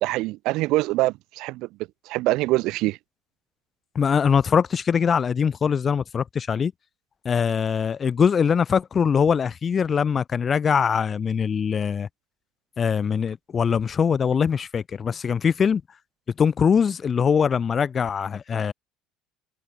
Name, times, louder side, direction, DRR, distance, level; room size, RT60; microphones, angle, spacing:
voice 1, 0.0-1.7 2.1-3.0, right 19 dB, 70° right, 2.7 m, -24 dB
voice 2, 3.9-6.7 7.2-12.1 12.8-15.8 16.4-18.7, left 6 dB, 35° left, 0.7 m, -22 dB
supercardioid pair, 100°, 0 cm